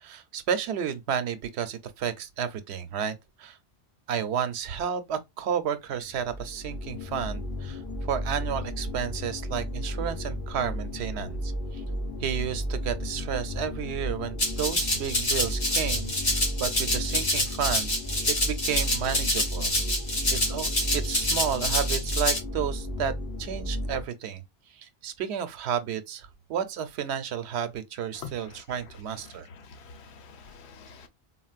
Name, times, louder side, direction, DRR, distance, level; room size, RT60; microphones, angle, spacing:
voice 1, 0.0-3.6 4.1-11.8 12.2-17.9 18.3-19.7 20.3-23.1 23.4-24.4 24.8-29.5, right 8 dB, 90° right, 0.9 m, -32 dB
sound 1, 6.0-24.0, equal, 20° left, 0.9 m, -33 dB
Rattle (instrument), 14.4-22.4, left 1 dB, 65° left, 1.9 m, -27 dB
voice 2, 28.1-28.6 29.2-31.1, left 5 dB, 85° left, 1.0 m, -46 dB
3.9 x 2.0 x 2.3 m
omnidirectional pair, 1.1 m